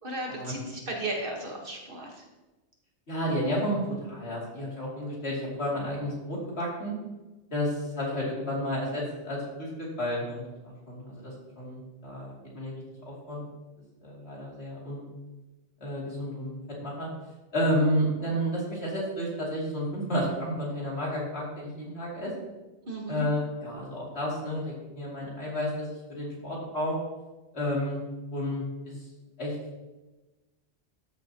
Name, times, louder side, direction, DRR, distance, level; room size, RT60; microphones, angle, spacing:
voice 1, 0.0-2.2 22.8-23.2, right 2 dB, 50° right, 0 dB, 1.6 m, -35 dB
voice 2, 3.1-6.9 7.5-13.4 14.0-15.1 15.8-17.1 17.5-22.3 23.1-27.0 27.5-28.0 28.3-28.9 29.4-29.5, equal, 65° left, -5 dB, 3.1 m, -31 dB
13.0 x 7.1 x 2.9 m, 1.1 s
omnidirectional pair, 1.2 m